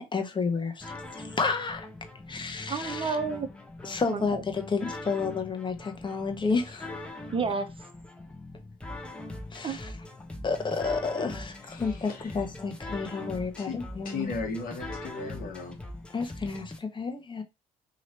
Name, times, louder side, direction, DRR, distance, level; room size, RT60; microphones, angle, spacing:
voice 1, 0.0-1.9 2.3-3.2 3.8-6.9 9.5-9.9 10.4-14.3 16.1-17.4, left 4 dB, 25° left, 1.1 m, -31 dB
sound 1, 0.8-16.8, left 2 dB, 5° left, 1.0 m, -41 dB
voice 2, 2.7-3.5 4.0-4.4 7.3-7.7 9.6-9.8, right 5 dB, 30° right, 0.7 m, -30 dB
voice 3, 11.7-12.5 13.6-13.8 14.0-15.8, left 4 dB, 55° left, 1.5 m, -36 dB
3.0 x 2.8 x 4.3 m
hypercardioid pair, 60°, 17 cm